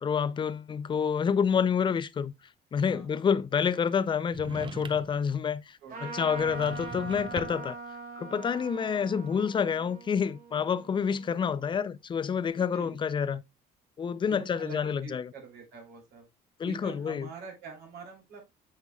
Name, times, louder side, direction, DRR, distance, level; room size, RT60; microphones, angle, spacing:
voice 1, 0.0-2.3 2.7-7.8 8.2-13.4 14.0-15.3 16.6-17.3, left 7 dB, 30° left, 0.4 m, -28 dB
voice 2, 2.9-3.2 5.8-6.6 9.1-9.2 12.5-13.0 14.1-16.3 16.6-18.4, right 5 dB, 75° right, 3.1 m, -46 dB
sound 1, 4.3-5.2 6.3-7.8, right 6 dB, 30° right, 0.6 m, -42 dB
Trumpet, 5.9-11.7, right 4 dB, 55° right, 2.1 m, -42 dB
8.1 x 5.6 x 2.3 m
cardioid pair, 110°, 17 cm